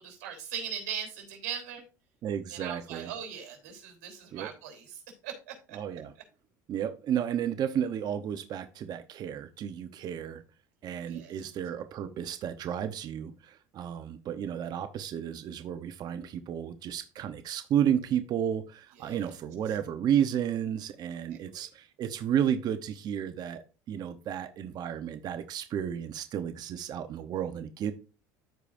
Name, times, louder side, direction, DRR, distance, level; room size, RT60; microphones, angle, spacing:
voice 1, 0.0-1.8 2.5-5.8 11.0-11.3 19.0-19.2 21.3-21.7, right 8 dB, 85° right, 3.5 m, -40 dB
voice 2, 2.2-3.1 4.3-4.5 5.7-6.1 6.7-10.4 10.8-27.9, right 9 dB, 45° right, 0.9 m, -32 dB
14.0 x 5.0 x 2.6 m
supercardioid pair, 105°, 9 cm